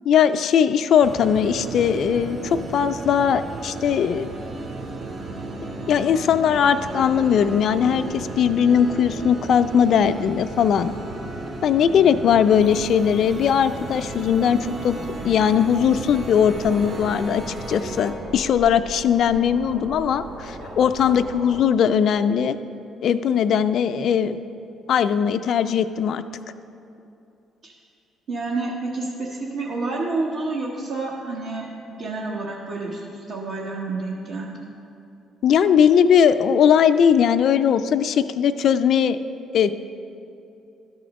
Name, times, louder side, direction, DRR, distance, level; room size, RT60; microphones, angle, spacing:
voice 1, 0.1-4.3 5.9-10.9 11.6-15.0 15.2-22.6 23.0-24.4 24.9-26.2 35.4-39.2 39.5-39.7, left 8 dB, 65° left, 11 dB, 0.3 m, -19 dB
sound 1, 1.0-18.1, right 2 dB, 40° right, 2.0 m, -34 dB
sound 2, 12.5-21.6, right 1 dB, 90° right, 1.3 m, -40 dB
voice 2, 28.3-34.7, right 3 dB, 70° right, -4 dB, 1.0 m, -29 dB
12.5 x 4.2 x 5.1 m, 2.7 s
supercardioid pair, 55°, 0 cm